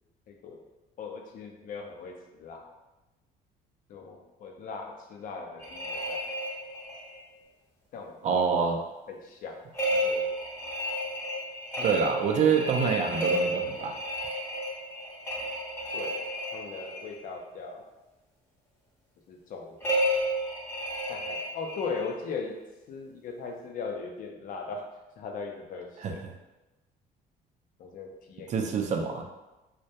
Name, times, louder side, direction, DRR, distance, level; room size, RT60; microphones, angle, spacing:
voice 1, 0.3-0.6 1.0-2.7 3.9-6.3 7.9-8.4 9.1-9.6 9.9-10.3 11.8-11.9 15.9-16.3 16.5-17.8 19.3-20.1 21.1-22.6 22.9-24.9 25.2-26.2 27.8-28.5, left 4 dB, 55° left, 2 dB, 0.5 m, -39 dB
sound 1, 5.6-7.2 9.7-17.1 19.8-22.1, equal, 15° left, 0.7 m, -31 dB
voice 2, 8.2-8.8 11.8-14.0 26.0-26.3 28.5-29.3, right 6 dB, 45° right, 3 dB, 0.4 m, -26 dB
2.2 x 2.1 x 2.7 m, 1.0 s
cardioid pair, 110°, 17 cm